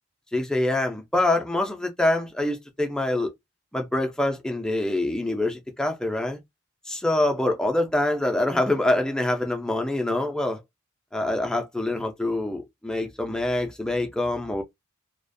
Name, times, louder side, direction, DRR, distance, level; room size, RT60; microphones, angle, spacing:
voice 1, 0.3-3.3 3.7-6.4 6.9-10.6 11.1-14.6, left 1 dB, 5° left, 0.4 m, -25 dB
2.4 x 2.2 x 2.5 m
head